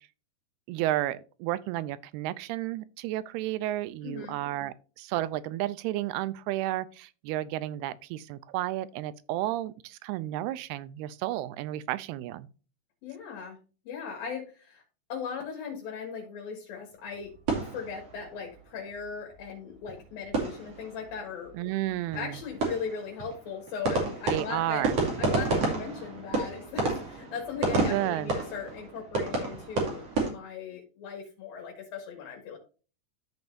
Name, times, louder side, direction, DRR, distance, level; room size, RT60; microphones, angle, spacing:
voice 1, 0.7-12.5 21.6-22.4 24.3-24.9 27.9-28.4, right 15 dB, 85° right, 2.6 m, -32 dB
voice 2, 4.0-4.4 13.0-13.6 13.9-14.8 15.1-24.9 25.2-32.6, left 6 dB, 70° left, 3.5 m, -38 dB
sound 1, 17.1-18.6 18.9-19.0 19.3-19.4 19.7-21.2 21.4-21.5 21.8-30.3, right 3 dB, 45° right, 3.2 m, -31 dB
13.5 x 5.4 x 2.6 m
omnidirectional pair, 4.5 m